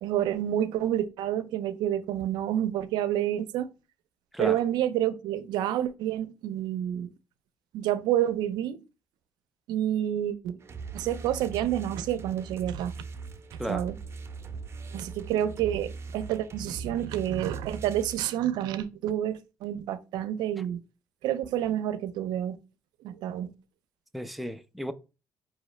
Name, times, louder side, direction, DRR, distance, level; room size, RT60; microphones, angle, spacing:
voice 1, 0.0-3.7 4.4-7.1 7.7-8.8 9.7-10.6 10.9-13.0 13.5-14.0 14.9-20.8 21.2-22.6 23.0-23.5, right 11 dB, 85° right, 0.5 m, -29 dB
sound 1, 10.6-18.2, right 5 dB, 35° right, 0.7 m, -40 dB
voice 2, 24.1-24.9, equal, ahead, 0.4 m, -33 dB
4.7 x 2.8 x 3.2 m
cardioid pair, 105°, 7 cm